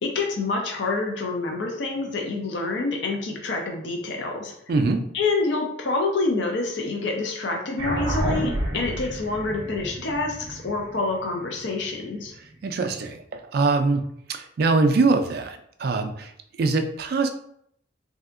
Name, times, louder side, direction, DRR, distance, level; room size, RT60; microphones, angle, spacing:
voice 1, 0.0-4.5 5.1-12.3, left 3 dB, 60° left, 1 dB, 0.5 m, -27 dB
voice 2, 4.7-5.0 12.6-14.0 14.3-16.3 16.6-17.3, right 3 dB, 50° right, 7 dB, 0.3 m, -23 dB
sound 1, 7.8-12.5, right 1 dB, 70° right, 0.7 m, -30 dB
3.3 x 2.7 x 2.4 m, 0.69 s
head